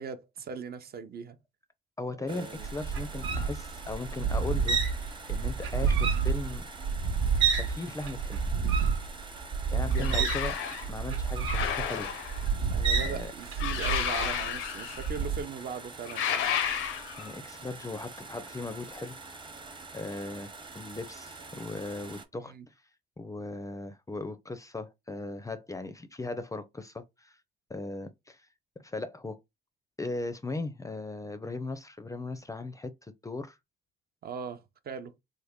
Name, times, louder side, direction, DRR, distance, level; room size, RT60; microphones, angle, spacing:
voice 1, 0.0-1.4 2.2-2.7 9.9-10.3 12.7-16.5 22.4-22.7 34.2-35.1, right 6 dB, 50° right, 0.6 m, -39 dB
voice 2, 2.0-4.8 5.3-6.6 7.5-8.4 9.7-10.5 10.9-12.1 13.1-13.3 17.2-19.2 19.9-22.7 23.2-27.4 27.7-28.5 28.8-29.4 30.0-33.6, left 2 dB, 15° left, 0.4 m, -38 dB
sound 1, 2.3-22.2, right 3 dB, 25° right, 0.8 m, -46 dB
sound 2, 2.6-7.8 8.0-14.5 15.0-15.4, right 5 dB, 85° right, 1.1 m, -29 dB
sound 3, 9.9-10.9 11.5-12.5 13.6-15.2 16.1-17.3, left 9 dB, 90° left, 0.6 m, -32 dB
3.4 x 2.1 x 3.5 m
cardioid pair, 90°, 20 cm